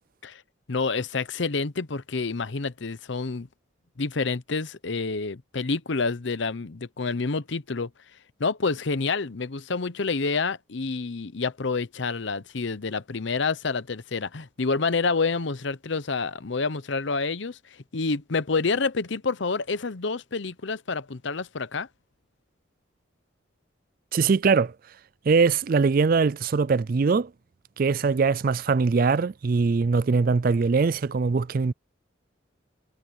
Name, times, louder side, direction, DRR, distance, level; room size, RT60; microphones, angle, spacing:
voice 1, 0.7-3.5 4.0-7.9 8.4-21.9, left 4 dB, 65° left, 0.8 m, -28 dB
voice 2, 24.1-24.7 25.3-27.3 27.8-31.7, right 4 dB, 45° right, 0.4 m, -22 dB
head